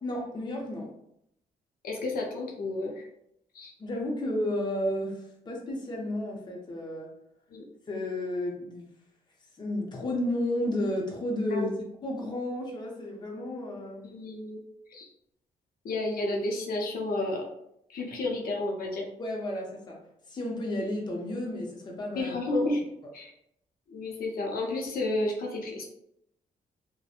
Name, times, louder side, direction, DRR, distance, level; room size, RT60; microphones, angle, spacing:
voice 1, 0.0-0.9 3.8-7.1 7.9-8.9 9.6-14.1 19.2-20.0 20.3-22.4, left 1 dB, 25° left, -1 dB, 0.6 m, -32 dB
voice 2, 1.8-3.1 3.5-3.7 7.5-7.6 11.5-11.7 14.0-14.6 14.9-15.1 15.8-17.5 17.9-19.1 22.2-22.8 23.1-23.3 23.9-25.8, left 2 dB, 70° left, 0 dB, 0.6 m, -31 dB
2.8 x 2.1 x 2.4 m, 0.74 s
cardioid pair, 115°, 16 cm